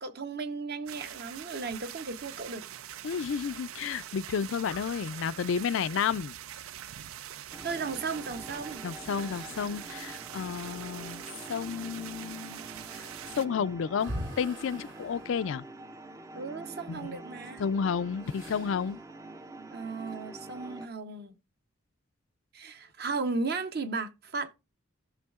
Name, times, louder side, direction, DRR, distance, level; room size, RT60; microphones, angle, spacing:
voice 1, 0.0-2.7 7.6-8.8 16.3-17.6 19.7-21.4 22.5-24.5, right 4 dB, 50° right, 0.8 m, -35 dB
sound 1, 0.9-13.5, right 11 dB, 90° right, 0.4 m, -44 dB
voice 2, 3.0-6.3 8.8-12.6 13.0-13.1 13.3-15.6 16.9-17.2 17.6-19.0, left 6 dB, 70° left, 0.4 m, -31 dB
sound 2, 3.1-10.3 10.8-10.9 11.6-16.2 18.2-19.0, equal, 70° right, 3.7 m, -46 dB
sound 3, 7.5-20.9, right 2 dB, 15° right, 0.4 m, -46 dB
15.0 x 6.3 x 2.4 m
head